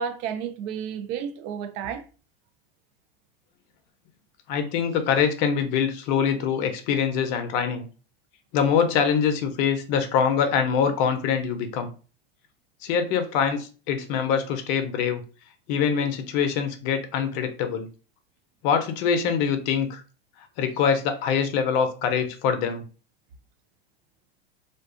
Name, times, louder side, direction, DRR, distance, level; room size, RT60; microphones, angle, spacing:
voice 1, 0.0-2.0, right 7 dB, 45° right, 0.5 m, -31 dB
voice 2, 4.5-7.9 8.5-11.9 12.8-15.2 15.7-17.9 18.6-20.0 20.6-22.8, left 7 dB, 50° left, 0.6 m, -24 dB
2.5 x 2.3 x 2.4 m
hypercardioid pair, 90°, 30 cm